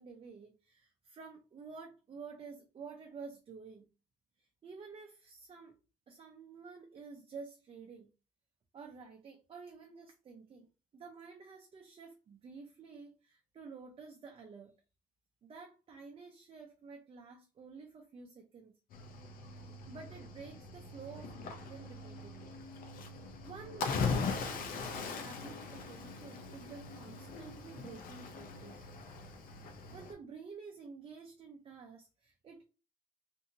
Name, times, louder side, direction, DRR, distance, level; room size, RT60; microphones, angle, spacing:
voice 1, 0.0-3.9 4.4-5.8 6.1-8.1 8.7-10.7 10.9-14.7 15.4-18.7 19.9-22.5 23.4-28.9 29.9-32.7, right 5 dB, 35° right, 0.5 m, -51 dB
Cricket / Waves surf, 18.9-30.1, left 4 dB, 60° left, 0.6 m, -40 dB
2.6 x 2.5 x 2.7 m
cardioid pair, 110°, 17 cm